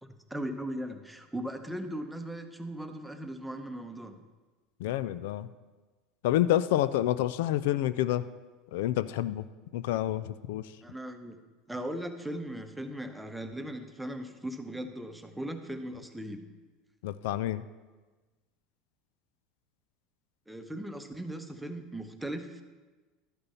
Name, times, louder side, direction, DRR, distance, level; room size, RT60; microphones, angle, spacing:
voice 1, 0.0-4.2 10.8-11.4 11.7-16.5 20.5-22.6, right 1 dB, 5° right, 6 dB, 0.8 m, -38 dB
voice 2, 4.8-5.5 6.2-8.3 8.7-9.5 9.7-10.7 17.0-17.6, left 13 dB, 80° left, 15 dB, 0.4 m, -28 dB
12.5 x 6.8 x 5.6 m, 1.3 s
supercardioid pair, 135°, 0 cm